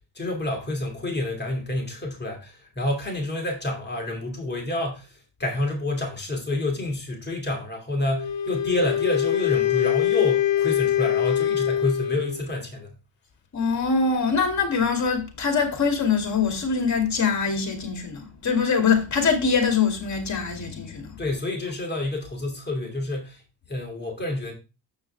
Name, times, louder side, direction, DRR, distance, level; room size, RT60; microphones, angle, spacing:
voice 1, 0.1-12.9 21.2-23.4 23.7-24.5, left 2 dB, 25° left, 2.6 m, -28 dB
Wind instrument woodwind instrument, 8.1-12.5, left 11 dB, 90° left, 1.0 m, -23 dB
voice 2, 13.5-21.2, left 5 dB, 40° left, 2.7 m, -23 dB
7.3 x 6.1 x 3.4 m
cardioid pair, 105°, 44 cm